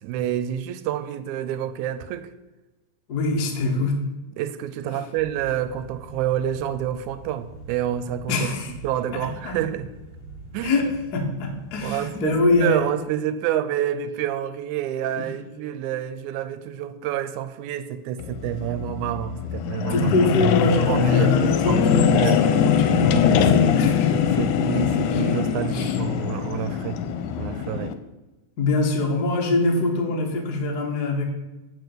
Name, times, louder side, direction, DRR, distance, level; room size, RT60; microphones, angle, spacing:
voice 1, 0.0-2.3 4.4-9.9 10.5-10.8 11.8-20.1 20.9-22.4 24.1-27.0 27.4-27.9, right 11 dB, 80° right, 12 dB, 1.9 m, -28 dB
voice 2, 3.1-4.0 4.9-5.0 8.3-8.7 9.1-9.5 10.6-10.9 11.1-12.8 15.2-15.3 19.9-24.5 25.0-25.2 25.7-26.0 28.6-31.2, left 2 dB, 65° left, 1 dB, 1.0 m, -24 dB
sound 1, 5.1-12.8, right 2 dB, 20° right, 2.4 m, -43 dB
sound 2, 18.2-27.9, left 7 dB, 85° left, 2.0 m, -22 dB
8.0 x 4.5 x 6.7 m, 1.1 s
omnidirectional pair, 3.5 m